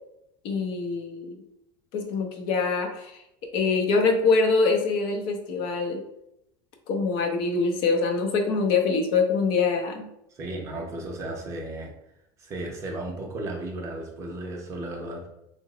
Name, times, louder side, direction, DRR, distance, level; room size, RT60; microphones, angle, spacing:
voice 1, 0.4-1.4 1.9-3.2 3.5-6.0 6.9-10.1, left 4 dB, 50° left, 4 dB, 0.5 m, -24 dB
voice 2, 10.3-11.9 12.4-15.3, right 2 dB, 25° right, 1 dB, 0.5 m, -34 dB
2.8 x 2.0 x 3.7 m, 0.82 s
cardioid pair, 165°, 11 cm